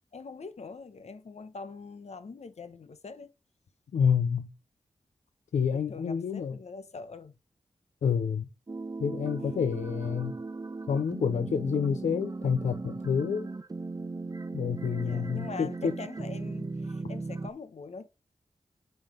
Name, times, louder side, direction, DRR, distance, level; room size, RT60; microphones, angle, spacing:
voice 1, 0.1-3.3 5.7-7.4 9.5-9.6 15.0-18.1, left 4 dB, 65° left, 1.0 m, -43 dB
voice 2, 3.9-4.5 5.5-6.5 8.0-8.5 9.0-10.4 10.9-13.5 14.5-15.9, left 6 dB, 85° left, 0.5 m, -28 dB
sound 1, 8.7-17.5, right 3 dB, 30° right, 0.6 m, -37 dB
5.7 x 5.3 x 5.0 m
cardioid pair, 40°, 12 cm